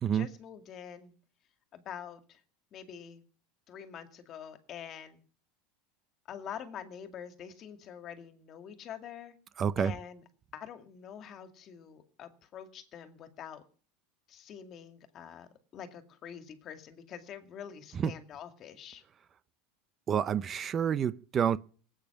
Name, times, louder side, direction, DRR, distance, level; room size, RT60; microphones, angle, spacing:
voice 1, 0.1-1.1 1.7-2.4 2.7-3.2 3.7-5.2 6.3-9.4 9.8-10.2 10.5-13.6 14.3-19.0, left 8 dB, 40° left, 2.1 m, -46 dB
voice 2, 9.6-9.9 17.9-18.1 20.1-21.6, right 8 dB, 30° right, 0.6 m, -28 dB
19.0 x 8.9 x 7.1 m
supercardioid pair, 140°, 0 cm